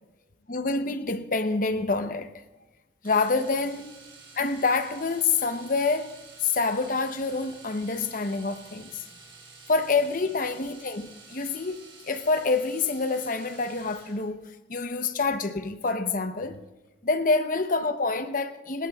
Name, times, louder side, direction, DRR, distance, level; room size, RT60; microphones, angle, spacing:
voice 1, 0.5-2.3 3.0-3.9 4.3-6.1 6.4-9.0 9.7-16.6 17.0-18.9, left 4 dB, 50° left, 0.8 m, -27 dB
Domestic sounds home sounds, 3.0-14.3 16.4-16.6 16.8-16.9, right 4 dB, 30° right, 5.8 m, -50 dB
27.5 x 19.5 x 2.4 m
head